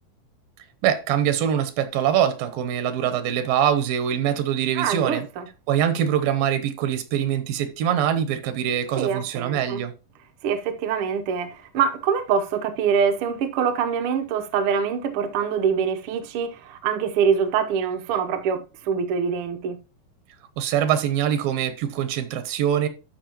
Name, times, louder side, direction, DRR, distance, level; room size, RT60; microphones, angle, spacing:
voice 1, 0.8-5.3 5.7-9.9 20.6-22.9, right 9 dB, 85° right, 2.7 m, -23 dB
voice 2, 4.7-5.5 9.0-9.8 10.4-19.8, right 7 dB, 70° right, 1.3 m, -24 dB
12.5 x 5.5 x 3.0 m
omnidirectional pair, 4.0 m